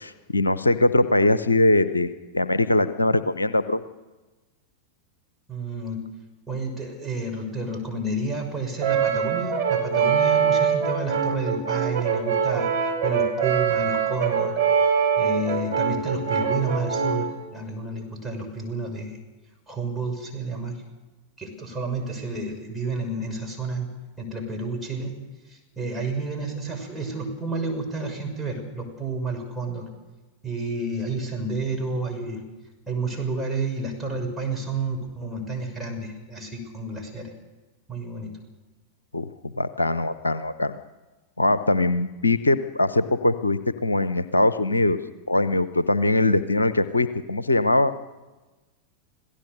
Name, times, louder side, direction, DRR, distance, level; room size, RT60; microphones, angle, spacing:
voice 1, 0.0-3.8 39.1-40.8 41.4-45.0 45.3-47.9, left 2 dB, 80° left, 14 dB, 0.8 m, -22 dB
voice 2, 5.5-6.1 6.5-12.7 13.0-14.6 15.2-19.2 19.7-20.8 21.4-23.9 24.2-25.1 25.5-29.9 30.4-32.4 32.9-37.3 37.9-38.3, right 3 dB, 5° right, 0 dB, 5.8 m, -30 dB
Brass instrument, 8.8-17.4, right 7 dB, 65° right, 3.7 m, -23 dB
26.5 x 17.5 x 6.7 m, 1.2 s
figure-of-eight pair, 90°, 0 cm